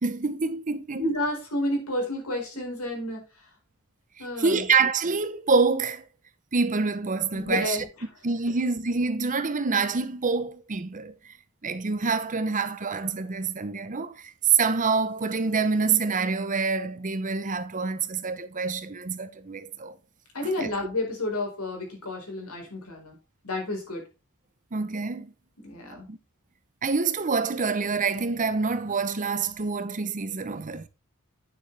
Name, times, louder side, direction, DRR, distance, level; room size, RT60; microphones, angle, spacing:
voice 1, 0.0-1.0 4.2-6.0 6.5-7.8 8.2-11.3 11.6-19.9 20.6-20.7 24.7-25.3 26.1-26.2 26.8-30.9, right 4 dB, 35° right, 0.7 m, -26 dB
voice 2, 1.0-3.2 4.2-4.6 7.3-7.8 20.3-23.2 23.4-24.0 25.6-26.1, left 1 dB, 85° left, 4.5 m, -30 dB
9.2 x 7.1 x 3.3 m
head